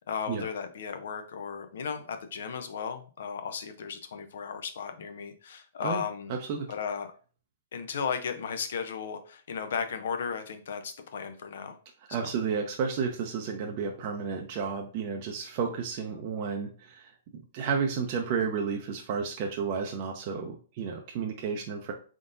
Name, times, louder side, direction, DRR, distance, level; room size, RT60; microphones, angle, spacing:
voice 1, 0.0-6.3 6.7-7.1 7.7-11.8 12.1-12.3, left 6 dB, 70° left, 8 dB, 0.6 m, -35 dB
voice 2, 6.3-6.7 12.1-17.1 17.5-21.9, right 6 dB, 45° right, 2 dB, 0.6 m, -32 dB
3.9 x 3.6 x 2.6 m, 0.39 s
hypercardioid pair, 130°, 0 cm